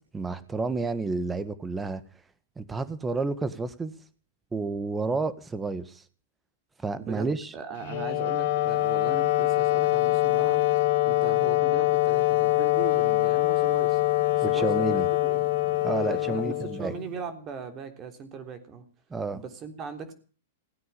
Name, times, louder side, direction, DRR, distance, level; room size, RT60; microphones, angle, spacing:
voice 1, 0.1-2.0 2.6-3.9 4.5-6.0 6.8-7.5 14.4-15.1 15.8-16.9 19.1-19.4, right 3 dB, 15° right, 14 dB, 1.6 m, -30 dB
voice 2, 6.9-10.7 11.1-14.0 14.4-18.8 19.3-20.1, right 6 dB, 30° right, 8 dB, 3.5 m, -39 dB
Wind instrument woodwind instrument, 7.8-17.1, left 17 dB, 60° left, 2.9 m, -24 dB
17.0 x 9.4 x 8.4 m, 0.39 s
hypercardioid pair, 120°, 0 cm